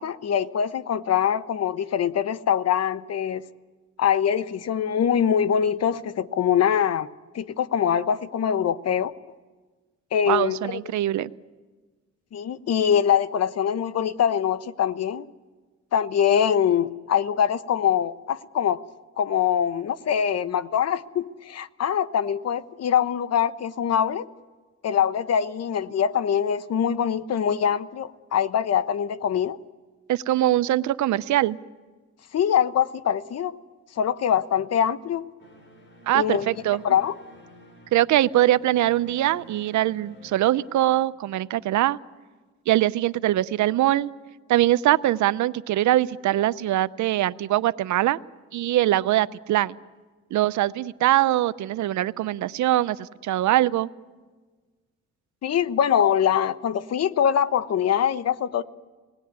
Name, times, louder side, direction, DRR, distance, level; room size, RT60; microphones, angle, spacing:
voice 1, 0.0-3.4 4.0-7.1 7.3-9.1 10.1-10.8 12.3-15.3 15.9-18.8 19.2-24.3 24.8-29.6 32.3-33.6 34.0-35.3 36.1-36.5 36.8-37.1 55.4-58.6, left 8 dB, 55° left, 0.9 m, -23 dB
voice 2, 10.2-11.3 30.1-31.6 36.1-36.8 37.9-42.0 42.7-44.1 44.5-48.2 48.5-49.7 50.3-53.9, right 14 dB, 75° right, 0.7 m, -22 dB
sound 1, 35.4-40.9, equal, 40° left, 4.3 m, -49 dB
26.5 x 19.0 x 9.4 m
cardioid pair, 90°, 30 cm